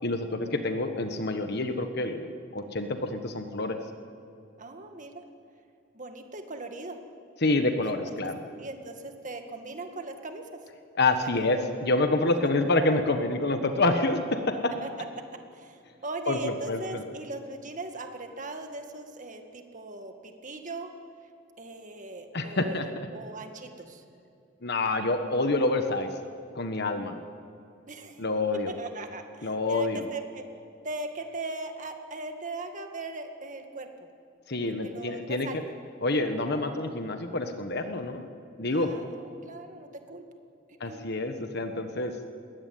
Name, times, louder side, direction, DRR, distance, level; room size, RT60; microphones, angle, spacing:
voice 1, 0.0-3.8 7.4-8.4 10.9-14.7 16.3-17.0 22.3-22.9 24.6-26.1 26.5-27.2 28.2-28.7 29.4-30.0 34.5-35.6 36.0-38.3 38.6-38.9 40.8-42.1, left 2 dB, 55° left, 7 dB, 1.4 m, -27 dB
voice 2, 4.6-5.2 5.9-7.0 7.8-8.3 8.6-10.6 11.4-11.6 14.8-14.9 15.5-20.9 21.6-24.0 27.9-28.2 28.7-30.4 30.8-33.9 34.8-35.6 38.7-40.2 40.8-41.0, right 2 dB, 40° right, 5 dB, 1.9 m, -39 dB
21.5 x 17.0 x 9.3 m, 2.7 s
head